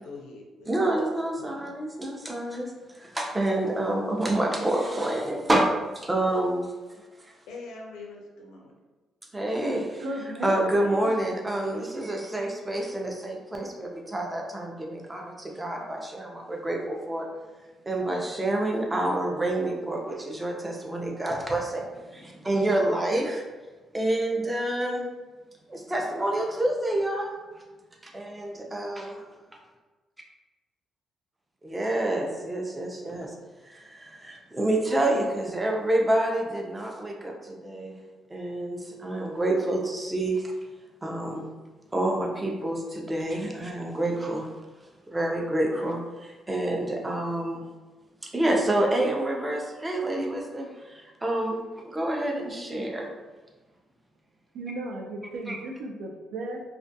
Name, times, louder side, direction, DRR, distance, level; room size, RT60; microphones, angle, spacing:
voice 1, 0.0-1.0 1.4-1.7 7.5-8.7, left 3 dB, 90° left, -1 dB, 0.4 m, -44 dB
voice 2, 0.7-6.7 9.3-10.0 10.4-17.3 17.9-23.4 23.9-25.1 25.7-27.3 28.0-29.3 31.6-33.3 33.6-38.0 38.3-40.5 41.0-41.5 41.9-44.5 45.1-47.6 48.2-53.1 55.5-55.6, right 1 dB, 15° right, 0 dB, 0.5 m, -28 dB
voice 3, 10.0-11.4 54.5-56.6, right 1 dB, 85° right, 2 dB, 0.4 m, -35 dB
2.3 x 2.2 x 2.6 m, 1.2 s
cardioid pair, 90°, 0 cm